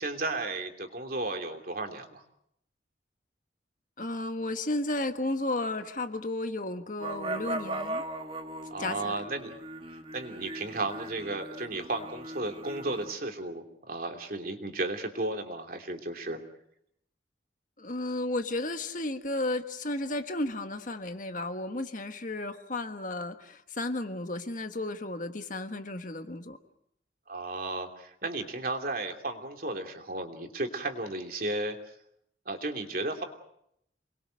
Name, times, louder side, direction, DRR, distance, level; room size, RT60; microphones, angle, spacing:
voice 1, 0.0-2.2 8.7-9.5 10.1-16.4 27.3-31.8 32.4-33.2, right 2 dB, 50° right, 4 dB, 2.9 m, -34 dB
voice 2, 4.0-8.0 8.8-9.2 17.8-26.6, left 2 dB, 45° left, 8 dB, 1.5 m, -33 dB
sound 1, 7.0-13.1, right 2 dB, 30° right, 1.9 m, -38 dB
28.0 x 21.5 x 6.5 m, 0.73 s
head